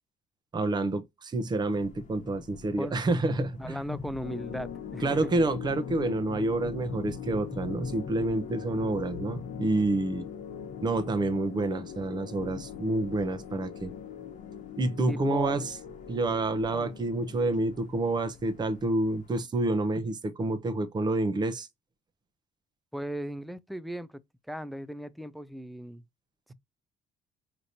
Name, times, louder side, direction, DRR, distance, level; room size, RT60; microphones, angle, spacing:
voice 1, 0.5-3.8 5.0-10.3 10.8-13.9 14.8-15.8 16.1-21.7, right 2 dB, 25° right, 0.7 m, -28 dB
sound 1, 1.5-19.4, left 5 dB, 45° left, 1.2 m, -45 dB
voice 2, 2.8-3.1 3.6-5.3 15.1-15.7 16.7-16.9 22.9-24.2 24.5-26.0, equal, ahead, 0.4 m, -37 dB
sound 2, 4.2-18.6, left 8 dB, 70° left, 0.8 m, -42 dB
4.9 x 2.9 x 2.6 m
cardioid pair, 110°, 17 cm